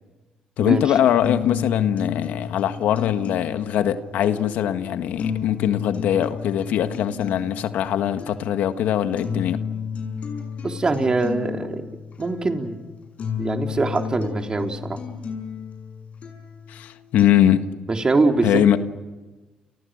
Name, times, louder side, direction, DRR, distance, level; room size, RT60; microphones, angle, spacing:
voice 1, 0.6-9.6 16.7-17.6 18.4-18.8, left 10 dB, 75° left, 9 dB, 1.6 m, -21 dB
sound 1, 1.2-17.2, left 7 dB, 55° left, 7.6 m, -32 dB
voice 2, 10.6-11.9 12.2-12.8 13.4-15.0 17.9-18.6, right 3 dB, 30° right, 3 dB, 3.7 m, -23 dB
29.5 x 29.5 x 6.6 m, 1.2 s
supercardioid pair, 70°, 3 cm